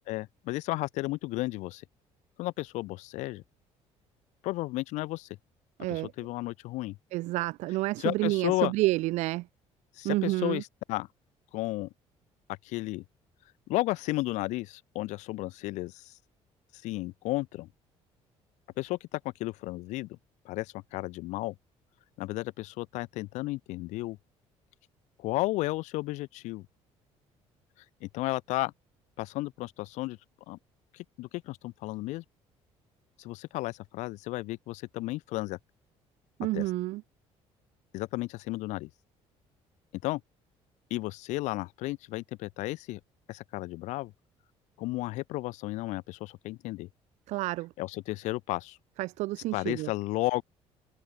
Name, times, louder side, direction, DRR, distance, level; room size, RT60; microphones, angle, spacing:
voice 1, 0.1-1.8 2.4-3.4 4.4-5.3 5.9-7.0 8.0-8.7 10.0-11.1 11.5-11.9 12.5-13.0 13.7-16.1 16.7-17.7 18.8-20.1 20.5-21.5 22.2-24.2 25.2-26.7 28.0-28.7 29.2-30.2 30.5-30.6 30.9-32.2 33.2-35.6 36.5-36.7 37.9-38.9 40.0-40.2 40.9-43.0 43.3-44.1 44.8-46.9 47.8-48.8 49.5-50.4, left 19 dB, 90° left, 2.0 m, -33 dB
voice 2, 5.8-6.1 7.1-9.5 10.0-10.6 36.4-37.0 47.3-47.7 49.0-49.9, right 19 dB, 75° right, 0.4 m, -29 dB
cardioid pair, 140°, 12 cm